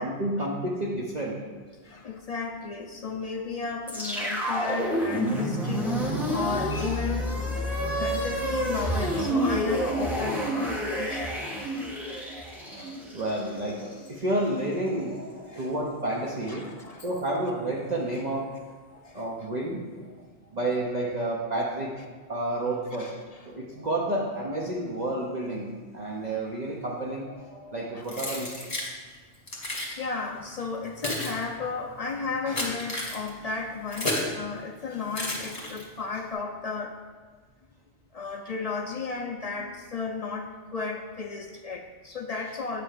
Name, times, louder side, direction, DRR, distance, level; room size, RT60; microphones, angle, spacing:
voice 1, 0.0-1.4 12.7-18.5 19.1-19.9 20.2-20.3 20.5-23.1 23.5-28.7, right 1 dB, 40° right, -3 dB, 0.8 m, -30 dB
voice 2, 1.8-11.4 12.8-13.0 15.5-15.7 16.5-17.1 18.9-19.5 23.0-23.2 27.9-28.0 29.1-29.2 29.6-37.0 38.1-42.8, left 4 dB, 55° left, 3 dB, 0.4 m, -34 dB
sound 1, 3.9-14.1, equal, ahead, 1.2 m, -29 dB
Keys jangling, 28.1-28.9 29.5-29.9 30.7-34.4 35.1-36.0, left 1 dB, 30° left, 1.6 m, -33 dB
8.4 x 3.4 x 6.5 m, 1.5 s
omnidirectional pair, 1.2 m